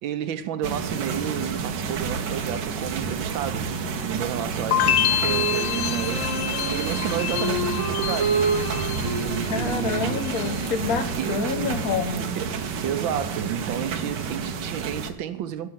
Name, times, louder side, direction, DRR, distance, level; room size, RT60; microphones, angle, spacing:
voice 1, 0.0-3.7 4.0-6.3 6.7-8.5 9.0-10.3 11.2-11.5 12.3-15.7, right 10 dB, 85° right, 1.4 m, -31 dB
sound 1, 0.6-15.1, right 5 dB, 65° right, 1.6 m, -30 dB
sound 2, 4.7-9.7 10.0-10.7, left 12 dB, 75° left, 1.3 m, -27 dB
Wind instrument woodwind instrument, 5.2-11.8, right 4 dB, 45° right, 1.7 m, -30 dB
voice 2, 9.5-12.3, left 5 dB, 55° left, 1.4 m, -28 dB
14.0 x 5.8 x 7.9 m
omnidirectional pair, 2.1 m